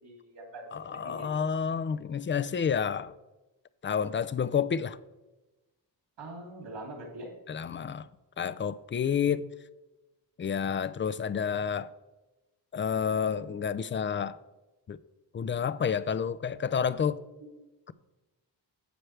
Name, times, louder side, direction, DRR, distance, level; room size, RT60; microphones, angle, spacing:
voice 1, 0.0-0.7 1.0-1.3 6.2-7.3 17.4-17.5, right 1 dB, 85° right, 2.7 m, -43 dB
voice 2, 0.7-3.1 3.8-5.0 7.5-8.1 8.4-9.5 10.4-11.9 12.7-14.4 14.9-15.0 15.3-17.2, left 7 dB, 30° left, 0.3 m, -29 dB
10.0 x 7.6 x 3.3 m
cardioid pair, 80°, 43 cm